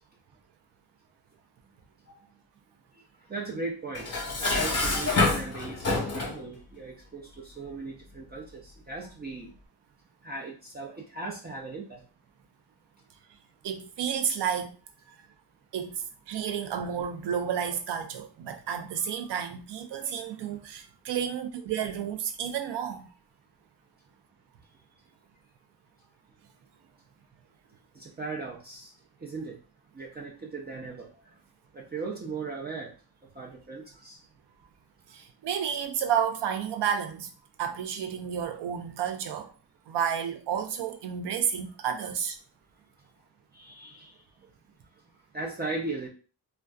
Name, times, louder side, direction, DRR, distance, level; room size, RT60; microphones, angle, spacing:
voice 1, 3.3-4.1 4.4-9.5 10.2-12.0 28.0-28.9 29.2-29.6 29.9-31.1 31.7-32.9 33.4-34.2 43.5-44.1 45.3-46.1, right 3 dB, 25° right, 0.4 m, -37 dB
Dishes pots and pans, 4.0-6.4, left 3 dB, 40° left, 0.8 m, -27 dB
voice 2, 13.6-14.8 15.1-15.2 15.7-23.1 35.1-37.3 37.6-39.5 39.9-42.4, right 8 dB, 80° right, 0.5 m, -31 dB
2.5 x 2.2 x 2.3 m
wide cardioid pair, 120°, 41 cm